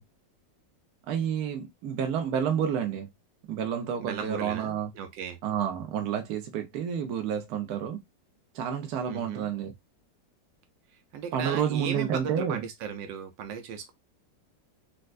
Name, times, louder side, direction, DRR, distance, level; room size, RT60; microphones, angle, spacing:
voice 1, 1.1-3.1 3.5-4.9 5.4-8.0 8.5-9.7 11.3-12.6, right 8 dB, 65° right, 1.2 m, -29 dB
voice 2, 4.0-5.4 9.1-9.5 11.1-13.9, right 7 dB, 85° right, 1.4 m, -36 dB
4.4 x 2.1 x 2.4 m
omnidirectional pair, 1.9 m